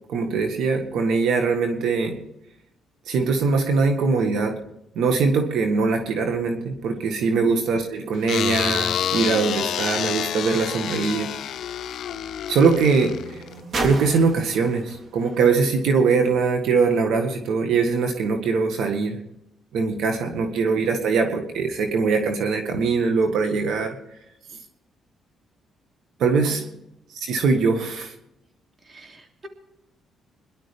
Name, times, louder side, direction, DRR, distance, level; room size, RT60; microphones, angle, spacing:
voice 1, 0.1-2.2 3.1-4.6 5.0-11.3 12.5-13.4 13.8-19.2 19.7-24.0 26.2-26.6 27.1-28.1, right 4 dB, 80° right, 5 dB, 1.8 m, -22 dB
sound 1, 8.3-13.6, left 9 dB, 70° left, 0.6 m, -28 dB
sound 2, 10.9-16.7 17.5-17.6, right 2 dB, 50° right, 3.5 m, -37 dB
voice 2, 28.8-29.5, right 1 dB, 30° right, 3 dB, 2.9 m, -44 dB
22.5 x 11.5 x 3.5 m, 0.83 s
cardioid pair, 90°, 0 cm